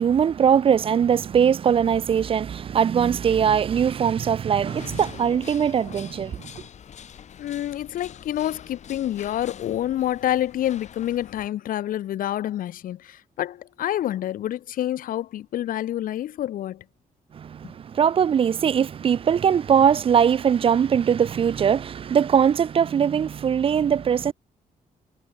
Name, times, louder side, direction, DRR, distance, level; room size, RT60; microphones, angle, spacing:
voice 1, 0.0-6.4 17.3-24.3, right 8 dB, 40° right, 0.4 m, -21 dB
sound 1, 4.6-11.5, left 8 dB, 50° left, 1.8 m, -44 dB
voice 2, 7.4-16.8 17.6-17.7, left 12 dB, 70° left, 0.5 m, -28 dB
wide cardioid pair, 165°, 15 cm